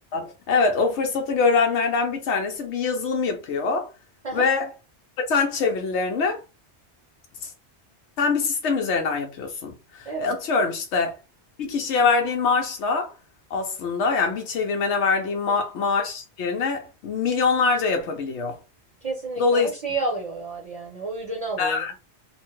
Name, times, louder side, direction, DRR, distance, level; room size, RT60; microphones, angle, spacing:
voice 1, 0.1-3.9 4.3-4.7 5.3-6.4 7.4-7.5 8.2-9.7 10.0-11.2 11.6-13.1 13.5-18.6 19.4-19.7 21.6-21.9, left 4 dB, 85° left, 0.9 m, -24 dB
voice 2, 10.0-10.4 15.5-15.6 19.0-21.8, right 3 dB, 35° right, 0.8 m, -30 dB
3.1 x 2.1 x 3.0 m
omnidirectional pair, 1.1 m